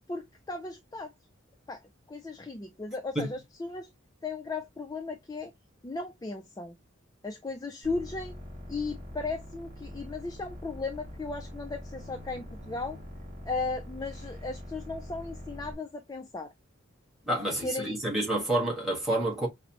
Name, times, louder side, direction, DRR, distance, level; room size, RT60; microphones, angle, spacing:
voice 1, 0.1-1.1 1.7-1.8 2.1-3.9 4.2-5.5 5.8-6.8 7.2-8.4 8.7-13.0 13.4-16.5 17.5-18.0, left 3 dB, 20° left, 0.3 m, -36 dB
sound 1, 7.8-15.7, left 1 dB, 30° right, 2.4 m, -44 dB
voice 2, 17.2-19.5, right 1 dB, ahead, 1.5 m, -29 dB
5.5 x 2.0 x 2.9 m
head